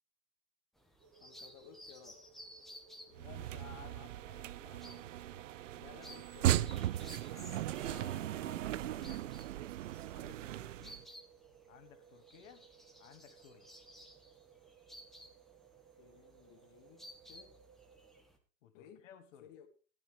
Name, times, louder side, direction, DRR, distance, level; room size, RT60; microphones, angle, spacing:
sound 1, 0.8-18.4, equal, ahead, 1.4 m, -57 dB
sound 2, 1.0-18.2, right 9 dB, 25° right, 1.2 m, -62 dB
voice 1, 1.2-2.3 3.1-3.5 5.8-6.8 16.0-17.6 18.7-19.1 19.4-19.7, left 8 dB, 30° left, 1.4 m, -58 dB
sound 3, 3.1-11.0, right 13 dB, 50° right, 0.5 m, -37 dB
voice 2, 3.2-5.6 7.0-9.3 10.1-11.1 11.7-12.7 13.0-13.7 18.6-19.5, left 10 dB, 50° left, 1.7 m, -57 dB
14.5 x 12.0 x 3.4 m
hypercardioid pair, 130°, 50 cm